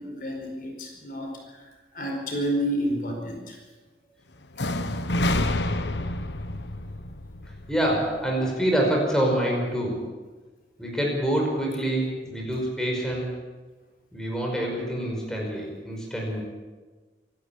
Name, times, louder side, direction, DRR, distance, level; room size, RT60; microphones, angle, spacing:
voice 1, 0.0-3.6, equal, 50° left, 2 dB, 4.8 m, -30 dB
sound 1, 4.6-8.5, left 1 dB, 85° left, 1.3 m, -28 dB
voice 2, 7.7-10.0 10.8-13.3 14.1-16.4, right 1 dB, 5° left, -2 dB, 5.4 m, -26 dB
26.5 x 12.0 x 8.6 m, 1.3 s
head